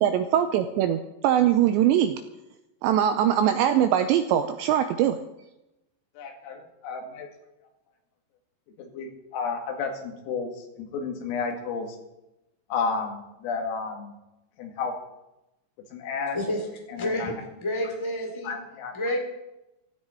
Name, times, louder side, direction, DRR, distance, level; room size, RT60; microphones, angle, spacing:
voice 1, 0.0-2.2 2.8-5.2, right 10 dB, 85° right, 8 dB, 2.6 m, -22 dB
voice 2, 6.2-7.3 8.8-12.0 12.7-14.1 14.6-15.0 15.9-16.4 16.9-17.3 18.4-18.9, left 5 dB, 85° left, 3 dB, 4.7 m, -32 dB
voice 3, 16.9-17.3 17.6-18.5 18.9-19.2, left 1 dB, 15° left, 1 dB, 1.2 m, -29 dB
16.0 x 14.5 x 4.4 m, 0.94 s
omnidirectional pair, 5.8 m